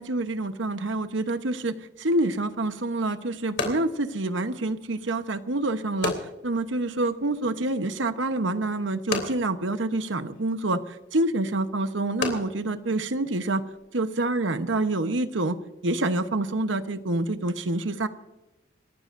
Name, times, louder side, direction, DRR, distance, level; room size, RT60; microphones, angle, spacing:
voice 1, 0.0-13.6 13.9-15.6 15.8-18.1, right 2 dB, 80° right, 10 dB, 1.0 m, -27 dB
sound 1, 2.5-13.9, left 3 dB, 60° left, 3.2 m, -37 dB
27.5 x 14.5 x 2.6 m, 1.0 s
head